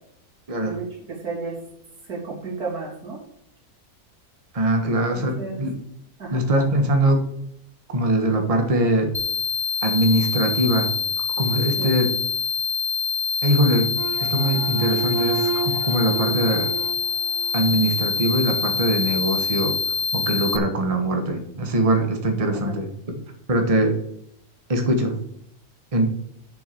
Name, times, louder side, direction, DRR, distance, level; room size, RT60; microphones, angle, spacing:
voice 1, 0.6-1.6 2.1-3.2 4.9-5.6 6.2-6.4 11.8-12.0 22.5-22.8, right 4 dB, 90° right, -2 dB, 3.5 m, -33 dB
voice 2, 4.5-5.8 6.3-7.3 7.9-9.1 9.8-10.9 11.4-12.1 13.4-13.9 14.2-16.7 17.5-19.8 20.1-22.9 23.5-23.9 24.7-25.1 25.9-26.1, right 1 dB, 25° right, 4 dB, 1.3 m, -22 dB
sound 1, 9.1-20.6, left 6 dB, 45° left, 0.4 m, -25 dB
sound 2, 13.9-18.2, right 6 dB, 65° right, 1.0 m, -32 dB
7.0 x 6.3 x 6.9 m, 0.74 s
omnidirectional pair, 1.6 m